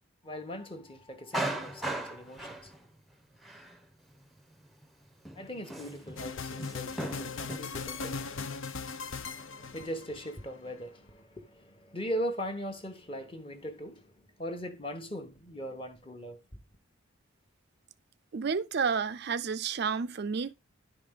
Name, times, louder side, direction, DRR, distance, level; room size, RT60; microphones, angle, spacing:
voice 1, 0.2-2.7 5.4-8.6 9.0-14.1 14.4-16.4, equal, 25° left, 1.1 m, -40 dB
Male speech man speaking, 1.3-2.9 3.4-3.8 4.8-4.9 5.3-6.2 6.6-7.6, right 1 dB, ahead, 0.7 m, -36 dB
sound 1, 6.2-10.4, left 4 dB, 70° left, 0.6 m, -39 dB
voice 2, 18.3-20.5, right 5 dB, 50° right, 0.4 m, -30 dB
11.0 x 5.1 x 3.6 m
head